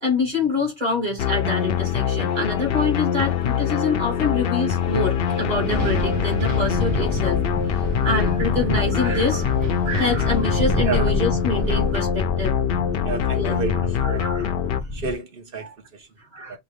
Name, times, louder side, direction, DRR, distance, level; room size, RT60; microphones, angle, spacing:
voice 1, 0.0-7.4 7.7-12.5 13.3-14.5 15.6-15.7 16.2-16.6, left 3 dB, 35° right, 2.9 m, -26 dB
sound 1, 1.2-14.8, left 9 dB, 65° left, 0.7 m, -24 dB
Wind, 4.6-11.9, right 1 dB, 80° right, 1.3 m, -32 dB
sound 2, 6.7-15.1, left 1 dB, ahead, 1.1 m, -28 dB
voice 2, 13.0-14.3 14.9-16.1 16.5-16.6, right 4 dB, 55° right, 1.2 m, -30 dB
5.5 x 2.6 x 3.3 m
omnidirectional pair, 1.2 m